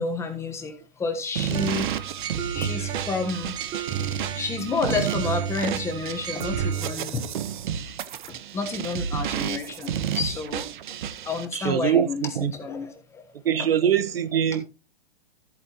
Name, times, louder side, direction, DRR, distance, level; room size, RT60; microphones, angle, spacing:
voice 1, 0.0-1.9 2.5-3.6 4.3-7.3 7.7-7.8 8.3-10.7 11.2-13.2 13.6-13.7, left 4 dB, 10° left, 1.3 m, -30 dB
sound 1, 1.4-11.5, right 9 dB, 55° right, 1.1 m, -31 dB
sound 2, 1.5-6.9, right 9 dB, 15° right, 0.8 m, -32 dB
voice 2, 11.5-12.5 13.4-14.6, right 9 dB, 90° right, 1.2 m, -23 dB
13.5 x 8.8 x 3.0 m
hypercardioid pair, 155°, 29 cm